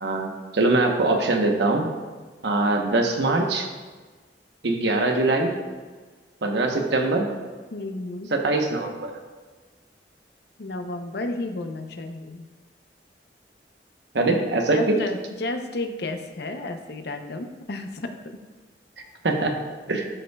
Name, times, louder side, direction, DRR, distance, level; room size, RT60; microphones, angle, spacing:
voice 1, 0.0-1.9 2.4-3.7 4.6-5.5 6.4-7.3 8.3-9.1 14.1-15.0 19.2-19.5 19.9-20.0, right 2 dB, 75° right, 3 dB, 0.9 m, -22 dB
voice 2, 7.7-8.3 10.6-12.5 14.7-18.1, left 2 dB, 65° left, 6 dB, 0.7 m, -32 dB
12.5 x 5.4 x 2.3 m, 1.4 s
head